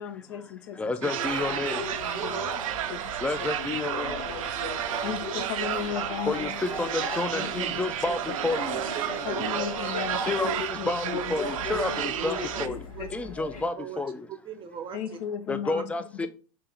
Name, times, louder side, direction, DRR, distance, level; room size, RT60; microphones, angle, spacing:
voice 1, 0.0-1.1 1.5-1.6 2.0-2.4 2.9-3.5 5.0-6.5 7.3-7.7 9.2-11.5 12.7-13.3 14.9-15.9, left 9 dB, 60° left, 0.6 m, -36 dB
voice 2, 0.8-1.8 3.2-4.2 6.3-8.8 10.3-12.8 13.1-14.3 15.5-16.3, left 3 dB, 5° left, 0.4 m, -30 dB
sound 1, 1.0-12.7, right 11 dB, 70° right, 0.4 m, -32 dB
sound 2, 1.1-13.6, left 2 dB, 90° left, 1.4 m, -37 dB
voice 3, 2.1-3.1 3.8-3.9 4.8-5.2 6.7-6.8 7.8-8.2 8.7-9.6 11.7-11.9 12.5-12.7 12.9-13.1 13.8-14.0 14.3-15.0 15.7-15.8, right 9 dB, 30° right, 0.7 m, -39 dB
3.9 x 2.8 x 3.7 m
hypercardioid pair, 90°, 18 cm